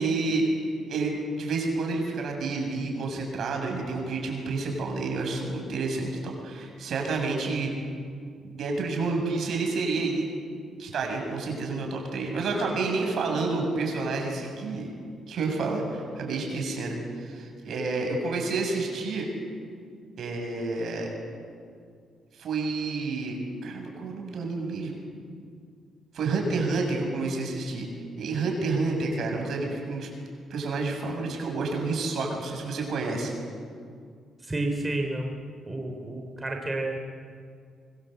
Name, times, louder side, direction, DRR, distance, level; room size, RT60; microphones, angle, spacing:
voice 1, 0.0-7.7 8.4-10.3 10.8-14.9 15.3-19.3 20.2-21.1 22.4-23.4 23.6-25.1 26.1-27.9 28.2-30.1 30.5-33.3, right 3 dB, 65° right, 2 dB, 7.4 m, -29 dB
voice 2, 34.4-35.3 35.7-37.0, right 2 dB, 20° right, 2 dB, 3.6 m, -30 dB
24.5 x 24.5 x 8.1 m, 2.2 s
cardioid pair, 90°, 0 cm